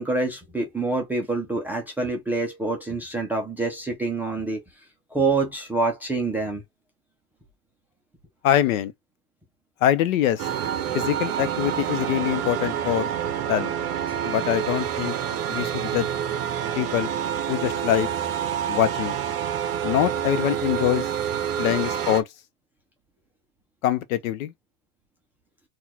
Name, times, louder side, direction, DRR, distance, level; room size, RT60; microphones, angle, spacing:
voice 1, 0.0-4.6 5.1-6.6, right 3 dB, 5° right, 0.4 m, -26 dB
voice 2, 8.4-8.9 9.8-10.5 10.9-13.1 13.5-13.7 14.2-15.2 15.5-16.1 16.7-17.1 17.5-18.1 18.7-19.2 19.8-21.1 21.6-22.3 23.8-24.5, left 12 dB, 65° left, 0.7 m, -24 dB
sound 1, 10.4-22.2, right 9 dB, 35° right, 0.7 m, -28 dB
3.9 x 2.4 x 2.8 m
supercardioid pair, 130°, 44 cm